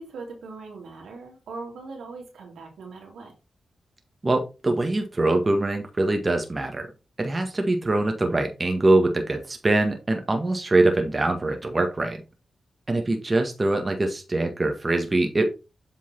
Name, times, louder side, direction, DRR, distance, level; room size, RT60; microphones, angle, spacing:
voice 1, 0.0-3.3 12.9-13.1, right 3 dB, 85° right, 0 dB, 2.6 m, -40 dB
voice 2, 4.2-6.9 7.2-12.2 12.9-15.5, right 2 dB, 35° right, 4 dB, 1.5 m, -23 dB
7.8 x 3.8 x 4.4 m, 0.29 s
supercardioid pair, 45°, 0 cm